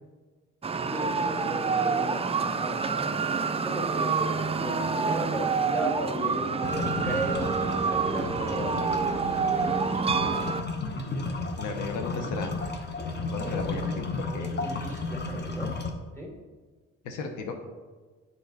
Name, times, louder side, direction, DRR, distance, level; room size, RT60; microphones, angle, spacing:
sound 1, 0.6-10.6, right 5 dB, 20° right, 0.4 m, -27 dB
voice 1, 0.9-2.8 3.6-7.5 7.8-8.9 13.4-14.0 14.3-15.7 16.2-16.3, right 1 dB, 10° left, -1 dB, 2.1 m, -35 dB
sound 2, 6.6-15.9, left 3 dB, 35° left, 1.0 m, -33 dB
voice 2, 11.6-12.5 13.3-14.5 17.0-17.5, left 4 dB, 85° left, 5 dB, 0.9 m, -34 dB
7.4 x 5.5 x 4.0 m, 1.4 s
cardioid pair, 90°, 30 cm